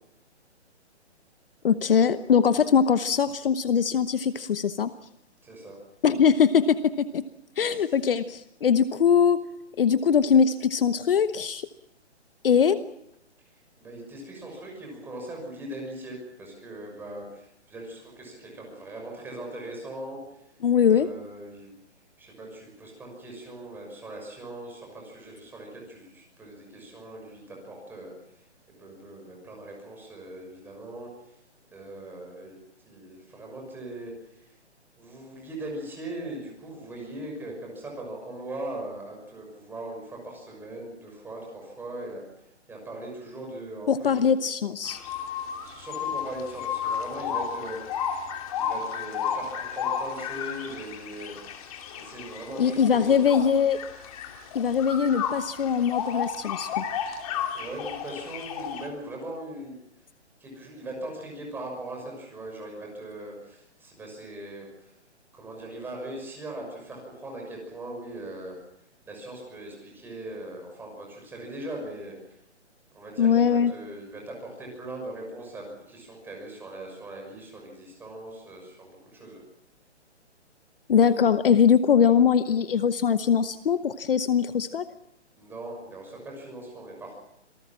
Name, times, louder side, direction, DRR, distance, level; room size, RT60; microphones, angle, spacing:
voice 1, 1.6-4.9 6.0-7.2 7.6-9.4 9.8-11.7 12.4-12.8 20.6-21.1 43.9-45.0 52.6-53.8 54.5-56.8 73.2-73.7 80.9-84.8, left 7 dB, 50° left, 12 dB, 1.0 m, -22 dB
voice 2, 5.4-5.8 7.7-7.8 13.5-20.5 20.9-21.7 22.2-28.4 28.8-31.4 31.7-32.6 32.8-34.6 35.0-44.3 45.6-51.6 51.9-53.4 57.1-57.2 57.5-59.8 60.4-64.9 65.3-68.6 69.1-72.4 72.9-79.4 85.4-87.2, right 1 dB, 5° right, 0 dB, 6.1 m, -40 dB
sound 1, 44.8-58.9, left 7 dB, 30° left, 3.1 m, -33 dB
27.0 x 19.0 x 7.4 m, 0.80 s
hypercardioid pair, 160°, 35 cm